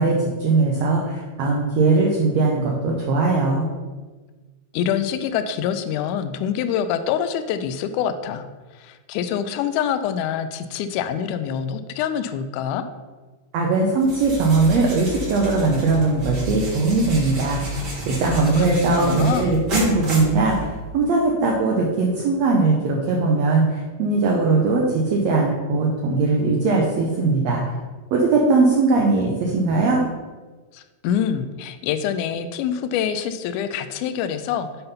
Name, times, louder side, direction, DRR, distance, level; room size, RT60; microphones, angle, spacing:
voice 1, 0.0-3.7 13.5-17.6 18.0-27.6 28.1-30.0, right 3 dB, 75° right, -1 dB, 1.6 m, -20 dB
voice 2, 4.7-8.5 8.7-12.9 18.6-19.6 30.7-34.7, left 8 dB, 85° left, 9 dB, 1.8 m, -25 dB
sound 1, 14.0-21.0, equal, 50° right, 1.3 m, -31 dB
6.9 x 4.0 x 5.5 m, 1.3 s
omnidirectional pair, 4.0 m